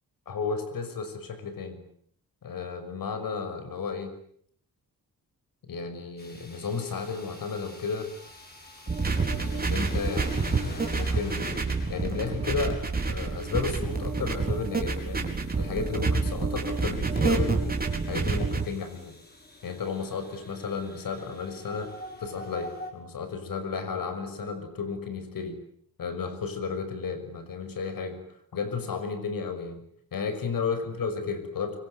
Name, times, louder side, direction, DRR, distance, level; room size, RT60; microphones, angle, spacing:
voice 1, 0.3-1.8 2.4-4.1 5.6-8.1 9.1-11.6 11.9-15.3 15.6-19.1 19.6-21.9 22.2-25.6 26.0-29.8 30.1-31.8, left 5 dB, 70° left, 9 dB, 6.2 m, -33 dB
sound 1, 6.2-22.9, left 1 dB, 25° left, 6.4 m, -48 dB
sound 2, 8.9-18.6, right 4 dB, 25° right, 4.4 m, -28 dB
24.5 x 24.5 x 9.4 m, 0.65 s
wide cardioid pair, 175°, 35 cm